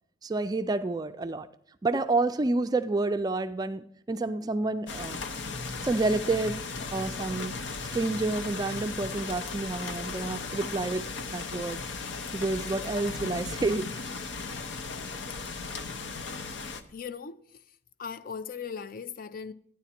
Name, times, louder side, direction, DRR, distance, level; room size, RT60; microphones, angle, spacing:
voice 1, 0.2-1.5 1.8-5.2 5.8-6.6 6.9-7.6 7.9-11.0 11.3-11.8 12.3-13.9, right 3 dB, 20° right, 0.3 m, -29 dB
sound 1, 4.9-16.8, left 4 dB, 85° left, 0.8 m, -36 dB
voice 2, 16.9-17.4 18.0-19.5, left 6 dB, 50° left, 0.5 m, -38 dB
13.0 x 9.8 x 4.3 m
head